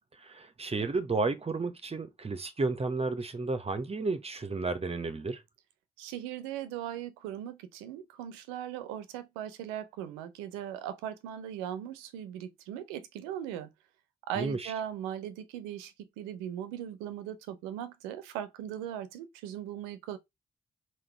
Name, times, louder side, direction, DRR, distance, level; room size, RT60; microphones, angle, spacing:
voice 1, 0.2-5.4 14.4-14.7, right 3 dB, 30° right, 0.8 m, -32 dB
voice 2, 6.0-13.7 14.3-20.2, right 10 dB, 80° right, 0.7 m, -39 dB
3.8 x 2.5 x 4.5 m
hypercardioid pair, 40°, 20 cm